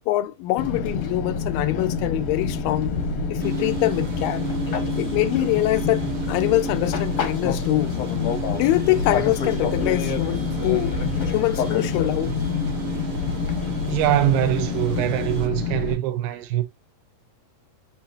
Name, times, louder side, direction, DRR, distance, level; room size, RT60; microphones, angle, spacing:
voice 1, 0.0-2.9 3.3-4.5 5.0-8.0 8.5-11.0 11.3-12.3, left 16 dB, 90° left, 2.3 m, -24 dB
Fixed-wing aircraft airplane, 0.6-15.9, left 5 dB, 70° left, 1.4 m, -27 dB
sound 1, 3.4-15.5, right 7 dB, 60° right, 1.4 m, -35 dB
voice 2, 13.9-16.6, right 13 dB, 85° right, 2.5 m, -23 dB
7.7 x 2.9 x 2.4 m
omnidirectional pair, 4.0 m